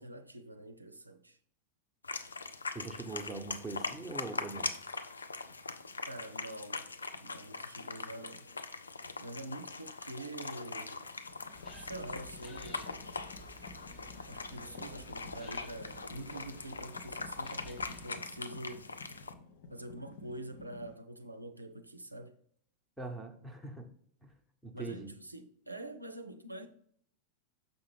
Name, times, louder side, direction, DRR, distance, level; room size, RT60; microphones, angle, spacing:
voice 1, 0.0-1.4 6.1-6.9 7.2-8.5 9.2-11.0 11.7-13.0 14.3-18.9 19.7-22.4 24.7-26.7, right 1 dB, 85° right, 0.4 m, -45 dB
sound 1, 2.0-19.3, left 4 dB, 75° left, 0.4 m, -42 dB
voice 2, 2.7-4.7 23.0-23.9 24.2-24.4 24.6-25.1, right 2 dB, 5° right, 0.9 m, -42 dB
sound 2, 11.1-21.0, left 4 dB, 55° left, 0.7 m, -54 dB
sound 3, 11.5-18.1, left 1 dB, 30° left, 1.0 m, -54 dB
6.5 x 5.7 x 3.2 m
figure-of-eight pair, 90°, 0 cm